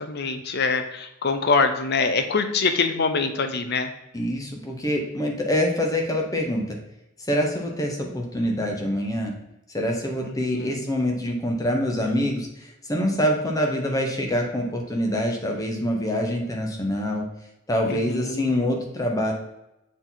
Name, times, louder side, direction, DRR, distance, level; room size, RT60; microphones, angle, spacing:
voice 1, 0.0-3.9 10.2-10.8 17.9-18.5, left 4 dB, 50° left, 8 dB, 0.6 m, -24 dB
voice 2, 4.1-6.8 7.3-9.3 9.7-17.3 17.7-19.3, equal, 15° left, 1 dB, 0.9 m, -25 dB
6.8 x 4.1 x 3.9 m, 0.88 s
head